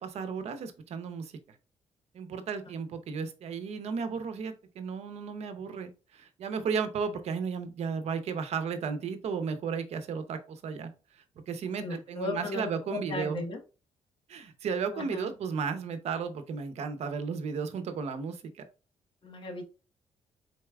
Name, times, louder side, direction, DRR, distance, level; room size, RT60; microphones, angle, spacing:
voice 1, 0.0-1.3 2.1-10.9 11.5-13.4 14.3-18.7, right 6 dB, 70° right, 9 dB, 0.8 m, -34 dB
voice 2, 11.8-13.6 14.9-15.2 19.2-19.6, left 2 dB, 45° left, 4 dB, 1.2 m, -36 dB
4.5 x 4.1 x 2.3 m, 0.33 s
cardioid pair, 105°, 11 cm